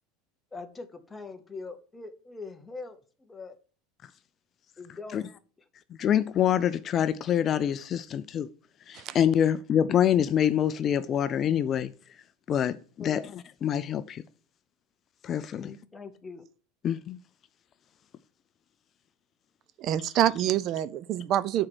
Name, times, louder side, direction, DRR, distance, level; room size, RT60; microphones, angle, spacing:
voice 1, 0.5-3.6 4.8-5.3 13.0-13.3 15.6-16.4, left 4 dB, 10° left, 0.8 m, -42 dB
voice 2, 6.0-8.5 8.9-11.9 12.5-13.2 13.6-14.2 15.2-15.7 16.8-17.2, left 9 dB, 30° left, 0.4 m, -25 dB
voice 3, 19.8-21.7, right 11 dB, 45° right, 0.4 m, -26 dB
6.4 x 4.4 x 6.1 m
supercardioid pair, 140°, 0 cm